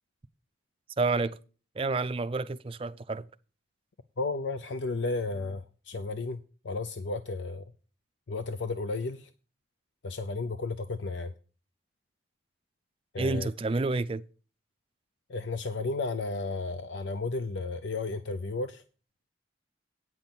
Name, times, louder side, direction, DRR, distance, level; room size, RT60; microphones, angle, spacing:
voice 1, 1.0-1.4 1.8-3.2 13.2-14.2, right 3 dB, 30° right, 0.4 m, -29 dB
voice 2, 4.2-7.7 8.3-9.3 10.0-11.3 13.1-13.5 15.3-18.8, left 3 dB, 80° left, 0.6 m, -33 dB
9.0 x 6.0 x 7.1 m
head